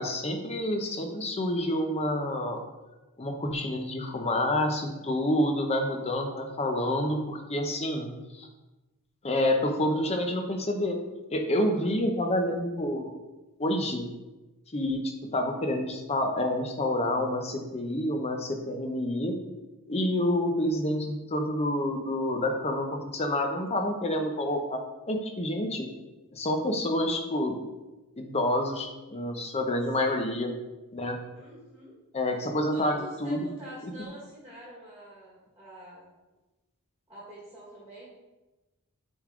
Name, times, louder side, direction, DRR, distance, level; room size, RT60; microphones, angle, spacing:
voice 1, 0.0-2.6 3.2-8.5 9.2-11.0 11.3-13.1 13.6-14.1 14.7-19.3 19.9-25.9 26.3-27.6 28.2-30.6 30.9-31.2 32.1-33.4 33.8-33.9, left 1 dB, 30° left, 4 dB, 0.7 m, -28 dB
voice 2, 31.3-32.0 32.7-36.1 37.1-38.1, right 2 dB, 10° right, -7 dB, 1.8 m, -45 dB
7.8 x 3.6 x 3.7 m, 1.1 s
head